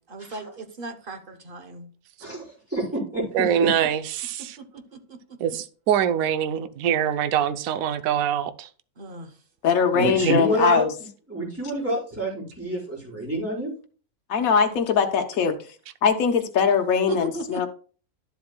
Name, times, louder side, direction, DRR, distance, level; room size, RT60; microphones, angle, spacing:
voice 1, 0.0-1.9 4.4-5.4 9.0-9.4 17.1-17.7, right 3 dB, 45° right, 0.9 m, -37 dB
voice 2, 2.2-3.7 9.9-10.8 11.3-13.7, equal, 10° right, 4.5 m, -27 dB
voice 3, 3.3-4.6 5.4-8.7 10.2-10.4, right 9 dB, 70° right, 1.0 m, -24 dB
voice 4, 9.6-10.9 14.3-15.6 16.0-17.7, left 6 dB, 70° left, 1.3 m, -21 dB
12.0 x 7.5 x 2.2 m
omnidirectional pair, 1.6 m